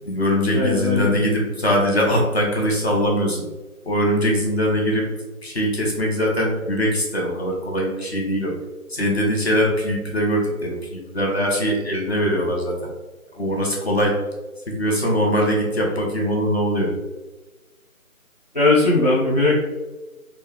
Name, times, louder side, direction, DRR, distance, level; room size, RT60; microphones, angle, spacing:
voice 1, 0.0-3.4 3.8-5.1 5.4-8.6 8.9-12.9 13.3-14.1 14.7-16.9, equal, 45° left, -2 dB, 1.0 m, -22 dB
voice 2, 0.5-1.1 18.5-19.5, left 2 dB, 30° left, -9 dB, 0.6 m, -18 dB
4.1 x 2.3 x 3.5 m, 1.2 s
figure-of-eight pair, 170°, 43 cm